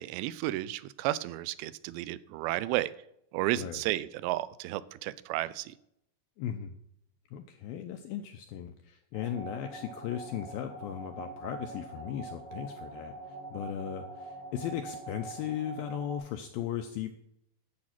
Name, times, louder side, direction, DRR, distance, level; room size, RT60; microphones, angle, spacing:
voice 1, 0.0-2.9 3.3-5.8, right 15 dB, 85° right, 16 dB, 2.8 m, -32 dB
voice 2, 6.4-6.8 7.3-17.1, left 10 dB, 85° left, 7 dB, 2.1 m, -37 dB
sound 1, 9.1-16.2, right 3 dB, 25° right, 4.0 m, -44 dB
11.0 x 7.9 x 5.8 m, 0.75 s
omnidirectional pair, 5.0 m